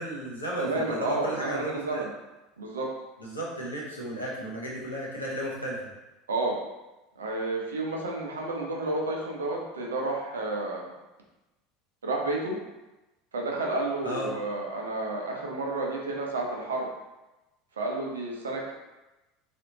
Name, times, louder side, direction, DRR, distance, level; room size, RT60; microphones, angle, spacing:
voice 1, 0.0-2.0 3.2-5.8 14.0-14.3, equal, 85° left, -5 dB, 0.8 m, -34 dB
voice 2, 0.6-2.1 2.6-2.9 6.3-6.6 7.2-10.9 12.0-12.6 13.3-16.9 17.8-18.7, right 2 dB, 70° right, -1 dB, 0.6 m, -31 dB
3.3 x 2.6 x 2.8 m, 1.0 s
figure-of-eight pair, 75°, 0 cm